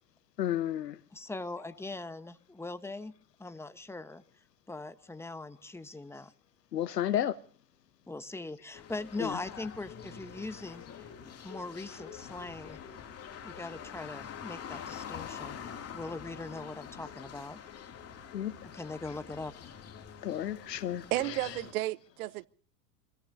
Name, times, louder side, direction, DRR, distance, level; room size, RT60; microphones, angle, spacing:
voice 1, 0.4-1.0 6.7-7.4 9.2-9.4 18.3-18.5 20.2-21.1, left 11 dB, 85° left, 1.1 m, -31 dB
voice 2, 1.1-3.1 3.4-4.2 4.7-6.3 8.1-11.1 11.4-12.8 13.4-17.6 18.7-19.5, left 2 dB, 5° left, 1.1 m, -41 dB
sound 1, 8.7-21.7, left 8 dB, 30° left, 2.7 m, -46 dB
voice 3, 21.1-22.5, right 17 dB, 65° right, 0.9 m, -32 dB
27.0 x 18.0 x 2.7 m
hypercardioid pair, 95°, 48 cm